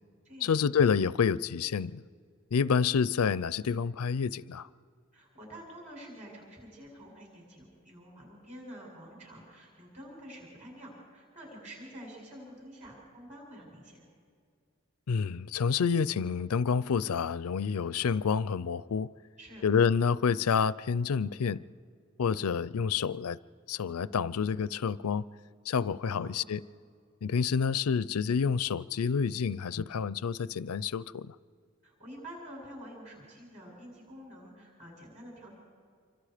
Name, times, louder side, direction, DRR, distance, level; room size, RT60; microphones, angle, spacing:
voice 1, 0.4-2.0 2.5-4.7 15.1-19.1 19.6-21.6 22.2-23.4 23.7-25.2 25.7-26.6 27.2-31.3, left 6 dB, 85° left, 0.5 m, -28 dB
voice 2, 5.1-14.0 19.4-19.7 26.0-26.4 31.8-35.5, equal, 30° right, 7.7 m, -48 dB
27.0 x 25.0 x 5.0 m
head